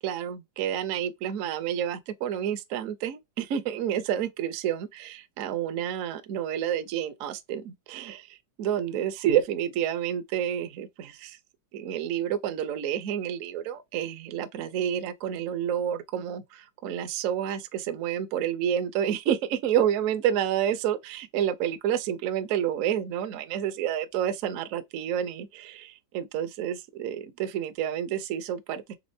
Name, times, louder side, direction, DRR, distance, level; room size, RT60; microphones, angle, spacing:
voice 1, 0.0-11.4 11.7-29.0, right 10 dB, 65° right, 0.8 m, -29 dB
4.2 x 3.3 x 2.7 m
omnidirectional pair, 2.0 m